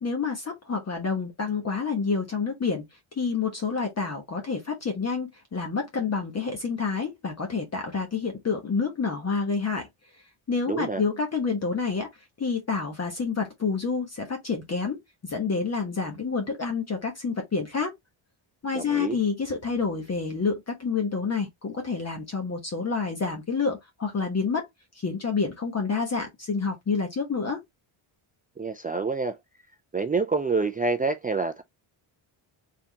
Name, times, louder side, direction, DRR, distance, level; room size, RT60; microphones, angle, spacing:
voice 1, 0.0-2.8 3.1-9.9 10.5-12.1 12.4-15.0 15.2-17.9 18.6-24.7 24.9-27.6, left 5 dB, 30° left, 1.1 m, -28 dB
voice 2, 10.7-11.0 18.7-19.2 28.6-29.3 29.9-31.6, right 4 dB, 20° right, 0.3 m, -27 dB
4.2 x 3.7 x 2.8 m
cardioid pair, 135°, 50 cm